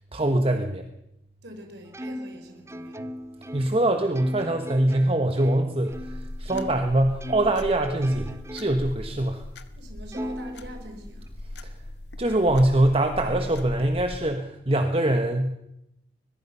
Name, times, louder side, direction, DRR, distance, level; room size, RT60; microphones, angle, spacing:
voice 1, 0.1-0.8 3.5-9.4 11.6-11.7 12.2-15.6, right 1 dB, 35° right, 6 dB, 1.3 m, -23 dB
voice 2, 1.4-3.3 6.5-6.6 9.8-11.3, equal, 75° right, 4 dB, 3.9 m, -45 dB
Plucked string instrument, 1.9-6.9 7.2-8.9 9.4-9.5 10.1-11.3, equal, 15° right, 0.8 m, -38 dB
sound 1, 5.9-14.3, left 1 dB, 75° left, 1.5 m, -39 dB
22.5 x 21.0 x 5.7 m, 0.85 s
head